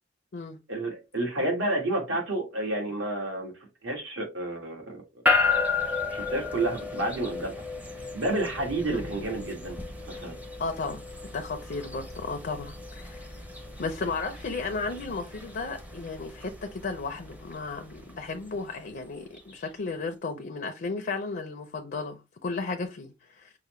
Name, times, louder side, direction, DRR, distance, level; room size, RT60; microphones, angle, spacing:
voice 1, 0.7-3.5 3.8-5.2 6.1-7.5 8.1-9.8 10.1-10.4, right 2 dB, 70° right, 1.7 m, -30 dB
sound 1, 5.3-19.5, left 4 dB, 10° right, 0.6 m, -33 dB
voice 2, 10.6-11.0 11.3-13.3 13.8-23.5, left 4 dB, 50° left, 0.5 m, -34 dB
5.5 x 2.1 x 3.0 m
head